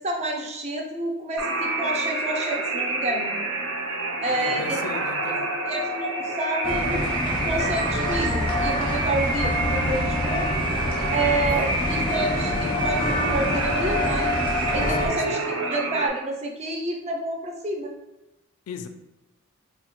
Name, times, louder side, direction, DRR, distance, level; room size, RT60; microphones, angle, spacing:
voice 1, 0.0-3.3 4.2-4.8 5.7-7.1 7.4-10.5 11.1-14.3 14.7-15.4 15.7-17.9, right 2 dB, 30° right, 0.4 m, -29 dB
sound 1, 1.4-16.1, right 2 dB, 90° right, 0.6 m, -28 dB
voice 2, 4.3-5.6 14.9-15.5 18.7-18.9, left 5 dB, 80° left, 0.3 m, -37 dB
sound 2, 6.6-15.1, left 1 dB, 20° left, 0.5 m, -26 dB
4.0 x 2.1 x 2.9 m
head